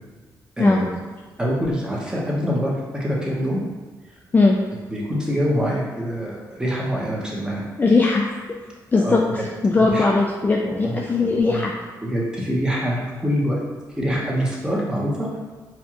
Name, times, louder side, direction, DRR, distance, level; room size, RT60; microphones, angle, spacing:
voice 1, 0.6-1.0 1.4-3.6 4.9-7.6 8.9-9.4 9.8-10.1 10.6-11.6 12.0-13.6 14.0-15.4, equal, 10° right, -4 dB, 0.9 m, -25 dB
voice 2, 7.8-8.2 8.9-9.2 9.6-11.7, left 3 dB, 25° left, -1 dB, 0.3 m, -18 dB
4.3 x 2.3 x 2.9 m, 1.4 s
cardioid pair, 100°, 8 cm